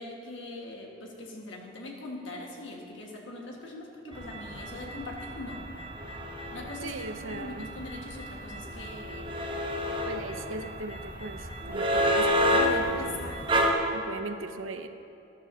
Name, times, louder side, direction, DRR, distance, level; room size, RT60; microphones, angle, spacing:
voice 1, 0.0-5.6 6.5-6.9 7.2-9.3 13.0-13.6, left 2 dB, 65° left, -1 dB, 1.6 m, -41 dB
sound 1, 4.1-13.7, equal, 25° right, 0.9 m, -30 dB
voice 2, 6.8-7.7 10.1-13.2 13.9-14.9, right 2 dB, 80° right, 8 dB, 0.6 m, -38 dB
13.0 x 11.5 x 2.8 m, 2.7 s
head